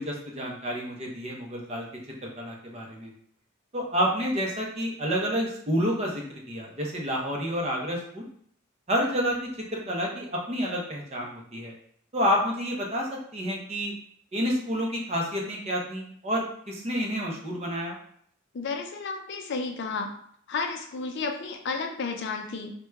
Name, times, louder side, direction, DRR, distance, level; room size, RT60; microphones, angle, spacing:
voice 1, 0.0-1.9 2.2-3.1 3.7-8.3 8.9-11.7 12.1-13.9 14.3-18.0, equal, 30° right, -1 dB, 0.6 m, -29 dB
voice 2, 18.5-20.1 20.5-22.7, left 4 dB, 55° left, 4 dB, 0.4 m, -32 dB
4.5 x 2.2 x 2.3 m, 0.65 s
head